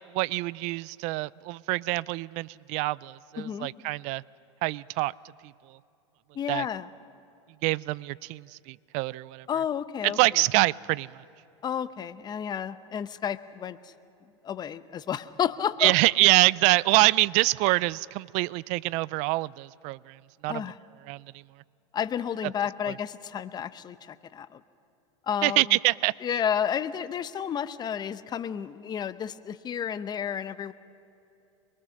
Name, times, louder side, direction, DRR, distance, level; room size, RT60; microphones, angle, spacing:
voice 1, 0.1-4.2 4.6-5.1 6.5-6.7 7.6-9.5 10.0-11.2 15.8-20.2 20.4-20.6 21.1-21.2 22.9-23.0 25.4-26.1, right 21 dB, 50° right, 22 dB, 0.4 m, -25 dB
voice 2, 3.4-3.7 6.3-6.9 9.5-10.2 11.6-13.8 14.4-15.9 20.5-20.8 21.9-24.6 25.3-25.8 26.2-30.7, left 8 dB, 25° left, 13 dB, 0.8 m, -31 dB
23.0 x 22.5 x 6.3 m, 2.8 s
hypercardioid pair, 115°, 16 cm